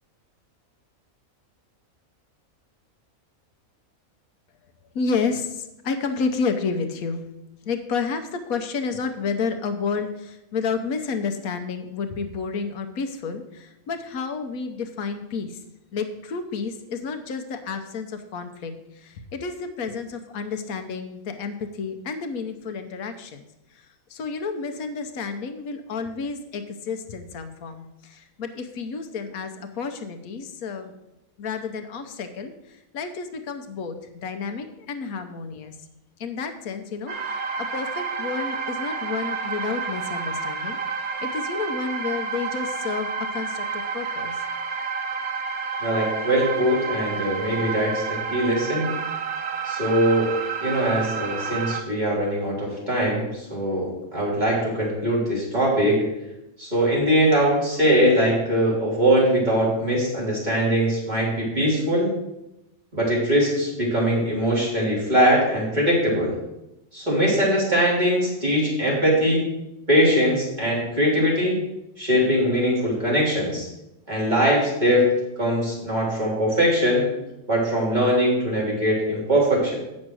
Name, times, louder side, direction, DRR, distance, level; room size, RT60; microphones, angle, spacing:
voice 1, 4.9-7.3 7.6-15.6 15.9-23.5 23.7-30.9 31.4-32.5 32.9-35.8 36.2-40.8 41.2-44.4, left 5 dB, 80° left, 7 dB, 1.3 m, -30 dB
sound 1, 37.1-51.8, right 5 dB, 80° right, 1.3 m, -30 dB
voice 2, 45.8-49.0 49.6-50.3 50.6-56.0 56.6-62.1 62.9-66.4 66.9-69.5 69.9-71.6 72.0-73.7 74.1-75.1 75.4-77.0 77.5-79.8, equal, 30° right, -6 dB, 3.5 m, -21 dB
8.5 x 6.4 x 6.1 m, 0.91 s
omnidirectional pair, 1.5 m